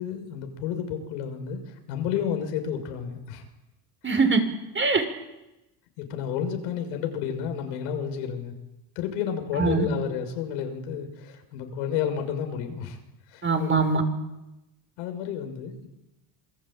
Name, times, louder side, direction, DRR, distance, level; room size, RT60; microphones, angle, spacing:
voice 1, 0.0-1.6 1.9-3.4 4.1-4.2 6.0-8.5 8.9-13.0 13.3-13.7 15.0-15.9, left 8 dB, 90° left, 6 dB, 6.5 m, -31 dB
voice 2, 4.0-4.4 4.7-5.0 9.6-9.9 13.4-14.0, right 4 dB, 25° right, 7 dB, 6.1 m, -22 dB
27.5 x 21.5 x 9.1 m, 0.95 s
supercardioid pair, 95°, 45 cm